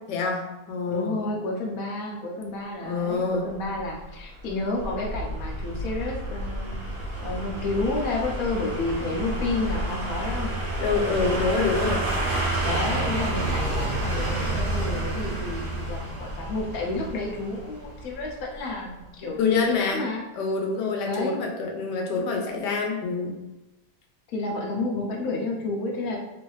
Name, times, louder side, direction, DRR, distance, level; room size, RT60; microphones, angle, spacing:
voice 1, 0.1-1.2 2.8-3.5 10.8-12.1 19.4-23.3, left 4 dB, 85° left, 1 dB, 1.3 m, -26 dB
voice 2, 0.9-6.8 7.2-10.6 12.6-20.2 21.0-21.3 24.3-26.2, left 2 dB, 65° left, -1 dB, 1.0 m, -30 dB
sound 1, 3.7-18.7 19.0-19.1, right 2 dB, 45° right, 0.7 m, -30 dB
sound 2, 4.9-15.4, equal, 90° right, 0.6 m, -35 dB
3.1 x 2.6 x 3.1 m, 1.0 s
omnidirectional pair, 1.8 m